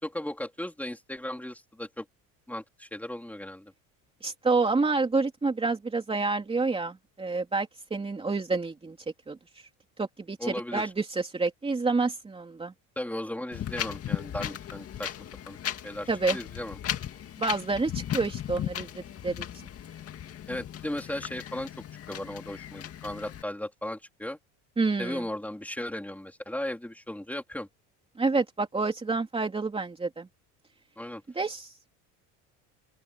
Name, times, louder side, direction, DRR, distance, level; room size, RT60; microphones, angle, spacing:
voice 1, 0.0-2.1 2.5-3.7 10.4-10.9 13.0-15.1 15.5-15.6 15.8-16.8 20.5-21.7 22.1-24.4 25.0-27.7 31.0-31.2, left 1 dB, 5° left, 4.1 m, -36 dB
voice 2, 4.2-9.0 9.3-9.4 10.0-12.7 16.1-16.4 17.4-19.4 24.8-25.2 28.2-30.3 31.3-31.9, right 3 dB, 15° right, 3.1 m, -28 dB
Wind, 13.5-23.4, left 10 dB, 40° left, 2.2 m, -36 dB
open air
cardioid pair, 120°, 36 cm